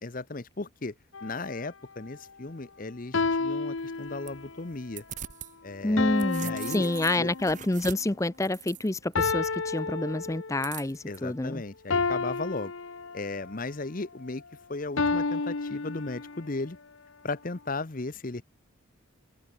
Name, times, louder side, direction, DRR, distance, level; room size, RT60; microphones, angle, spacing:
voice 1, 0.0-0.9 1.2-5.0 5.6-6.1 6.4-6.9 7.2-7.3 11.1-12.7 13.1-14.4 14.7-16.8 17.2-18.4, left 3 dB, 40° left, 0.9 m, -36 dB
sound 1, 1.1-1.6 3.1-4.6 6.0-7.8 9.1-10.8 11.9-13.5 15.0-16.6, left 4 dB, 70° left, 1.0 m, -31 dB
sound 2, 3.8-5.5 5.9-9.2 10.6-11.2, right 10 dB, 35° right, 0.9 m, -43 dB
voice 2, 5.8-11.6, left 2 dB, 15° left, 0.5 m, -28 dB
open air
head